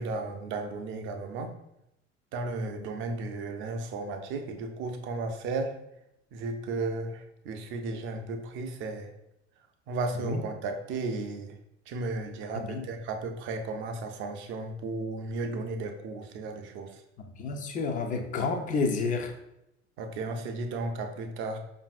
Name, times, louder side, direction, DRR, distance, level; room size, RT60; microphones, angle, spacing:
voice 1, 0.0-1.5 2.3-5.7 6.3-9.1 9.9-11.6 11.9-16.9 20.0-21.6, right 3 dB, 35° right, 6 dB, 0.4 m, -34 dB
voice 2, 12.5-12.8 17.4-19.3, left 4 dB, 25° left, 5 dB, 0.4 m, -30 dB
5.2 x 2.6 x 2.3 m, 0.84 s
figure-of-eight pair, 65°, 34 cm